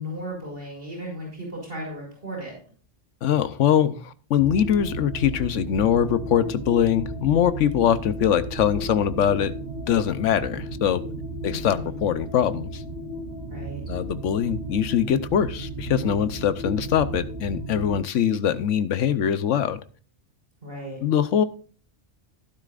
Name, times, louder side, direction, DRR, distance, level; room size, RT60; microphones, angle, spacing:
voice 1, 0.0-2.5 11.5-12.1 13.5-13.8 20.6-21.0, equal, 50° right, -1 dB, 5.6 m, -35 dB
voice 2, 3.2-9.5 9.9-11.0 11.4-12.8 13.9-19.8 21.0-21.4, left 9 dB, 90° left, 14 dB, 1.1 m, -22 dB
sound 1, 4.4-18.0, right 1 dB, 35° right, 3.3 m, -34 dB
13.0 x 11.5 x 2.4 m, 0.41 s
omnidirectional pair, 1.2 m